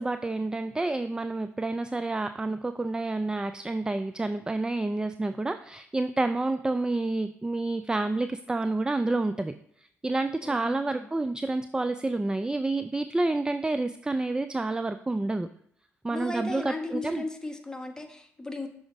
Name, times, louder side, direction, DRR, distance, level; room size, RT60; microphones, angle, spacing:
voice 1, 0.0-9.5 9.8-15.5 16.0-17.2, right 2 dB, 10° right, 11 dB, 0.3 m, -29 dB
voice 2, 10.4-11.1 16.1-18.7, left 2 dB, 10° left, 4 dB, 1.2 m, -36 dB
6.2 x 4.9 x 4.0 m, 0.71 s
hypercardioid pair, 50°, 7 cm